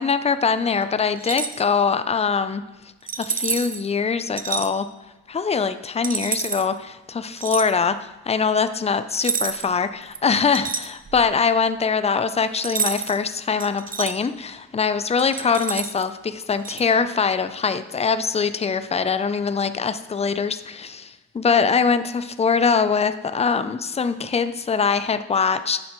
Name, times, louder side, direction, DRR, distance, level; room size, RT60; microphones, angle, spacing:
voice 1, 0.0-2.7 3.2-4.9 5.3-25.8, left 5 dB, 20° left, 12 dB, 0.5 m, -23 dB
sound 1, 1.2-1.6 3.1-3.8 4.4-4.7 6.0-6.6 7.4-7.7 9.1-9.8 10.1-11.3 12.6-13.2 13.6-14.1 15.2-16.0 16.6-16.8, right 5 dB, 25° right, 0.6 m, -28 dB
9.4 x 6.3 x 3.1 m, 1.0 s
supercardioid pair, 65°, 33 cm